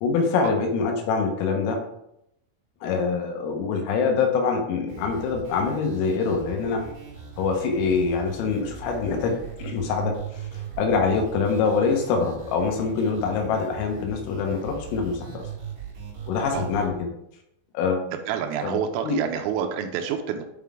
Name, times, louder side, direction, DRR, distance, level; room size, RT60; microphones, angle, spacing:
voice 1, 0.0-1.8 2.8-6.8 7.4-15.4 16.3-16.9 17.8-18.1 18.6-18.8 19.0-19.2, left 5 dB, 85° left, 2 dB, 3.7 m, -25 dB
sound 1, 4.9-16.9, right 6 dB, 45° right, 3.6 m, -39 dB
voice 2, 18.3-20.4, right 8 dB, 85° right, 4 dB, 3.3 m, -28 dB
8.7 x 3.8 x 3.6 m, 0.80 s
omnidirectional pair, 6.0 m